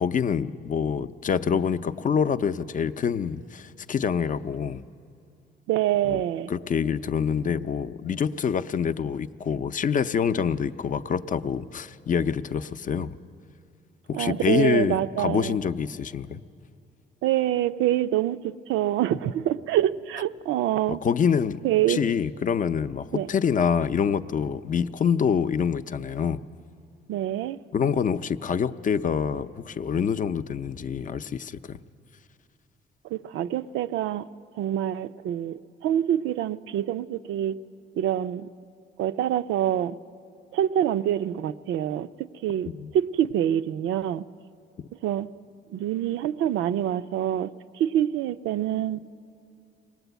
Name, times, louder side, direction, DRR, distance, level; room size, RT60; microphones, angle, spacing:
voice 1, 0.0-4.8 6.1-6.2 6.5-13.2 14.1-16.4 20.9-21.6 21.9-26.4 27.7-31.8 42.7-42.9, left 7 dB, 40° left, 11 dB, 0.6 m, -26 dB
voice 2, 5.7-6.5 14.1-15.6 17.2-21.0 21.6-22.0 23.1-23.3 27.1-27.6 33.1-34.3 34.6-37.6 38.0-38.5 39.0-40.0 40.5-44.3 45.0-45.3 45.7-47.5 47.8-49.1, right 11 dB, 85° right, 12 dB, 0.5 m, -26 dB
20.5 x 19.0 x 8.1 m, 2.6 s
cardioid pair, 90°, 20 cm